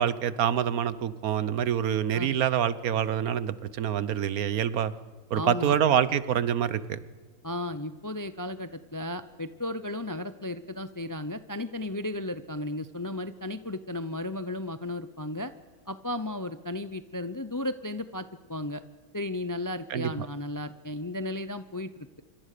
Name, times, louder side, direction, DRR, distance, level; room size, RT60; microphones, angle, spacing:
voice 1, 0.0-4.9 5.3-7.0 19.9-20.3, right 9 dB, 80° right, 16 dB, 1.4 m, -26 dB
voice 2, 5.3-5.7 7.4-15.5 15.9-18.8 19.1-22.2, left 1 dB, 25° left, 12 dB, 0.4 m, -34 dB
26.0 x 24.0 x 6.7 m, 1.3 s
omnidirectional pair, 1.5 m